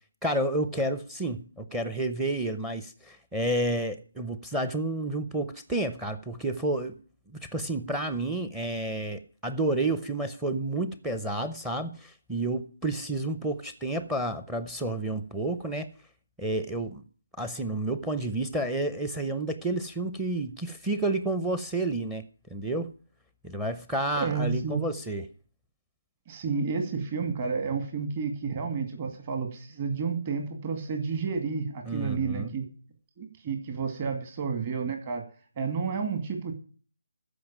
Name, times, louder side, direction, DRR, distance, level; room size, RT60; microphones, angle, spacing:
voice 1, 0.2-7.0 7.4-15.9 16.4-17.0 17.4-22.2 22.5-22.9 23.4-25.3 31.9-32.6, right 2 dB, 5° right, 11 dB, 0.7 m, -30 dB
voice 2, 24.1-24.9 26.3-32.6 33.2-35.2 35.6-36.5, right 5 dB, 30° right, 4 dB, 2.3 m, -31 dB
14.0 x 5.4 x 8.8 m, 0.42 s
figure-of-eight pair, 155°, 0 cm